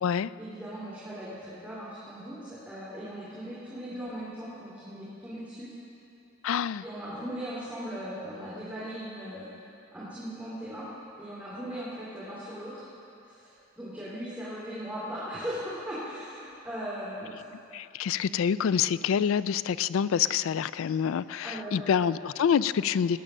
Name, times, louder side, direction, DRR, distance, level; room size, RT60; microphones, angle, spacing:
voice 1, 0.4-5.7 6.8-9.4 9.9-10.9 11.2-12.8 13.2-17.4 21.4-22.0, equal, 5° right, -10 dB, 2.7 m, -38 dB
voice 2, 6.4-6.8 17.7-23.2, left 7 dB, 85° left, 16 dB, 0.3 m, -26 dB
18.0 x 8.8 x 6.3 m, 2.8 s
head